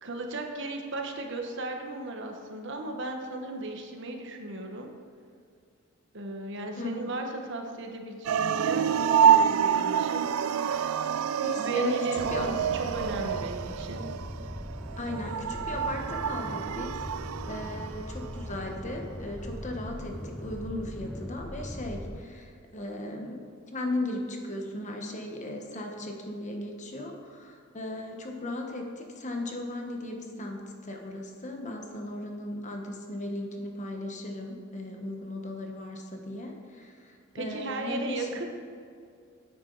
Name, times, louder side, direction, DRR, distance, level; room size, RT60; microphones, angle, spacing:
voice 1, 0.0-4.9 6.1-10.2 11.6-14.0 37.3-38.4, right 2 dB, 60° right, 3 dB, 1.2 m, -35 dB
sound 1, 8.2-18.3, right 8 dB, 90° right, 0.3 m, -27 dB
voice 2, 11.4-12.6 15.0-17.0 17.4-23.4 23.7-38.4, left 1 dB, 35° left, 3 dB, 1.2 m, -36 dB
sound 2, 12.2-22.2, equal, ahead, 0.4 m, -40 dB
9.8 x 9.0 x 4.0 m, 2.3 s
head